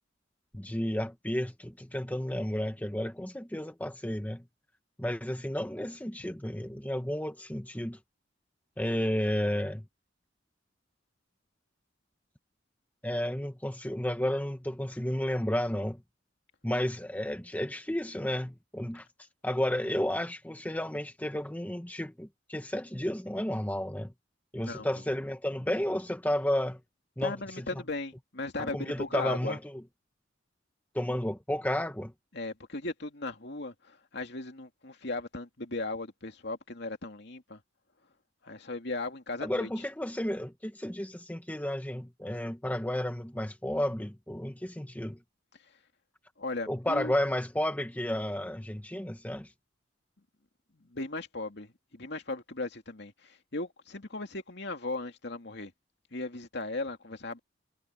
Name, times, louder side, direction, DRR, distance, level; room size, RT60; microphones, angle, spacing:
voice 1, 0.5-4.4 5.0-8.0 8.8-9.8 13.0-16.0 16.6-19.1 19.4-24.1 24.5-26.8 27.2-27.8 28.6-29.8 30.9-32.1 39.4-45.2 46.7-49.5, left 1 dB, 10° left, 1.1 m, -32 dB
voice 2, 27.2-29.6 32.3-37.6 38.4-39.7 46.4-47.1 50.7-55.7 56.1-57.4, left 2 dB, 60° left, 2.6 m, -37 dB
head